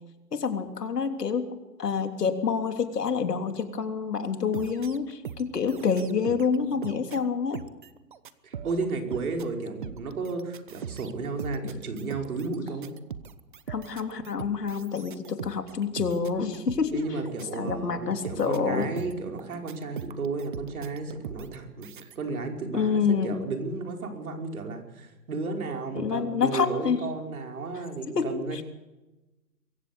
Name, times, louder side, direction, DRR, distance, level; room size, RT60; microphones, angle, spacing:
voice 1, 0.3-1.5 1.8-7.6 13.7-17.0 17.5-18.9 22.7-23.4 25.9-27.0 28.1-28.6, left 6 dB, 75° left, 6 dB, 3.4 m, -27 dB
sound 1, 4.5-6.6 6.8-22.2, right 8 dB, 30° right, 0.9 m, -41 dB
voice 2, 6.7-7.0 8.4-12.9 16.9-28.6, right 3 dB, 60° right, 3 dB, 5.3 m, -33 dB
23.0 x 16.0 x 8.2 m, 1.0 s
hypercardioid pair, 160°, 49 cm